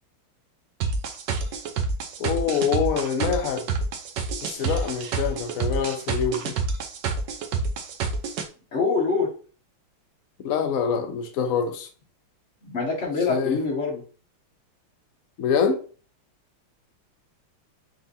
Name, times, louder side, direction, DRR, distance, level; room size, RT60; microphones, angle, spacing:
sound 1, 0.8-8.5, right 5 dB, 65° right, 1.2 m, -28 dB
voice 1, 2.2-3.7 4.4-6.5 10.4-11.9 13.3-13.6 15.4-15.8, left 6 dB, 80° left, 0.7 m, -25 dB
voice 2, 8.7-9.3 12.6-14.0, left 4 dB, 35° left, 1.8 m, -25 dB
5.1 x 3.7 x 2.7 m
omnidirectional pair, 2.4 m